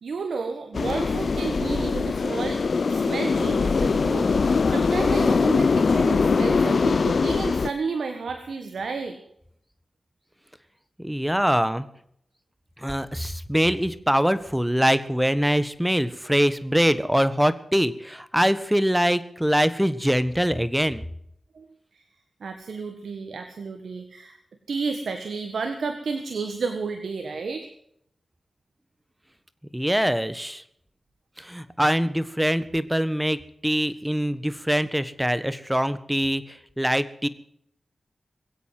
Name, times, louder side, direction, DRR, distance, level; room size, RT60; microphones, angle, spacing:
voice 1, 0.0-2.6 2.9-9.2 21.5-21.6 21.9-22.0 22.4-24.4 24.7-27.7, right 4 dB, 80° right, 7 dB, 1.5 m, -31 dB
sound 1, 0.7-7.7, left 4 dB, 70° left, 0.7 m, -22 dB
voice 2, 11.0-11.8 12.8-21.0 29.7-30.6 31.4-37.3, equal, 5° right, 14 dB, 1.5 m, -23 dB
22.0 x 8.3 x 7.7 m, 0.70 s
cardioid pair, 45°, 0 cm